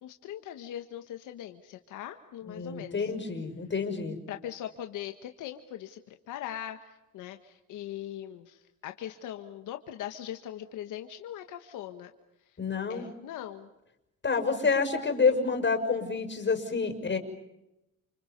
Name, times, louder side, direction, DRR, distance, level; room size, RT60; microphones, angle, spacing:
voice 1, 0.0-3.1 4.3-12.1 12.9-13.7, left 11 dB, 90° left, 6 dB, 1.6 m, -41 dB
voice 2, 2.5-4.2 12.6-13.1 14.2-17.2, left 4 dB, 40° left, 6 dB, 6.2 m, -28 dB
30.0 x 29.0 x 5.4 m, 0.90 s
cardioid pair, 90°, 30 cm